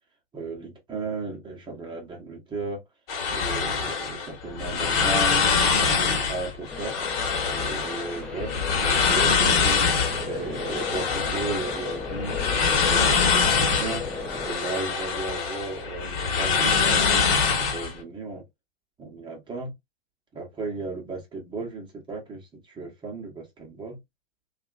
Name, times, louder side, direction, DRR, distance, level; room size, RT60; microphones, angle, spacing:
voice 1, 0.3-2.8 3.3-5.4 5.8-7.0 7.5-12.4 12.8-14.1 14.4-18.4 19.0-19.7 20.3-24.0, right 3 dB, 15° right, 0.8 m, -35 dB
sound 1, 3.1-17.9, left 5 dB, 45° left, 1.2 m, -24 dB
sound 2, 6.7-14.5, left 2 dB, 5° left, 0.3 m, -35 dB
2.7 x 2.4 x 2.4 m
hypercardioid pair, 110°, 31 cm